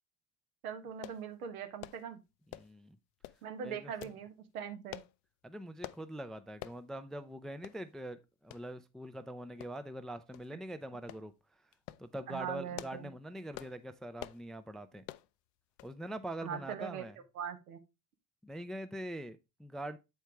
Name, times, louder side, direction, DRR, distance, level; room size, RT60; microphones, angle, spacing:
voice 1, 0.6-2.2 3.4-5.0 12.3-13.1 16.4-17.0 17.3-17.8, right 8 dB, 75° right, 1.4 m, -41 dB
sound 1, 1.0-1.2 1.8-2.0 2.5-2.8 3.2-3.4 4.0-4.2 4.9-5.1 5.8-6.0 6.6-6.8 7.2-7.3 7.6-7.8 8.5-8.6 9.6-10.0 10.3-10.5 11.1-11.3 11.7-12.0 12.5-13.1 13.5-13.8 14.2-14.4 15.0-15.3 15.8-16.0 16.3-16.4, left 16 dB, 55° left, 0.6 m, -46 dB
voice 2, 2.5-3.0 3.6-3.9 5.4-11.6 12.0-15.0 15.8-17.2 18.4-20.0, right 1 dB, ahead, 0.4 m, -43 dB
8.0 x 4.6 x 3.4 m
hypercardioid pair, 70°, 44 cm